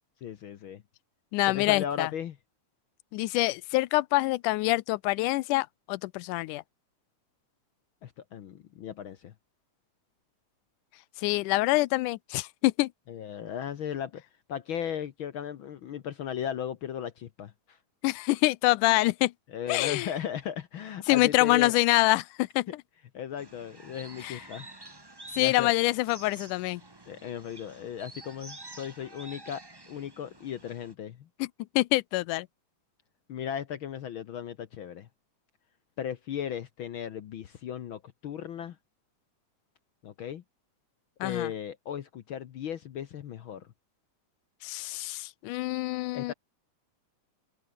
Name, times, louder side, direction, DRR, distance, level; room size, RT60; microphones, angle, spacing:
voice 1, 0.2-0.8 1.4-2.4 8.0-9.3 13.1-14.2 14.5-17.8 19.5-21.7 23.1-24.7 25.4-25.7 27.1-31.3 33.3-35.1 36.0-38.8 40.0-40.4 41.2-43.7 46.1-46.3, left 9 dB, 70° left, 1.2 m, -36 dB
voice 2, 1.3-2.1 3.1-6.6 11.2-12.9 18.0-19.3 19.7-20.1 21.1-22.7 24.2-24.4 25.3-26.8 31.4-31.5 31.8-32.5 41.2-41.5 44.6-46.3, left 19 dB, 90° left, 2.2 m, -26 dB
sound 1, 23.4-30.9, right 2 dB, 15° right, 0.7 m, -49 dB
omnidirectional pair, 3.5 m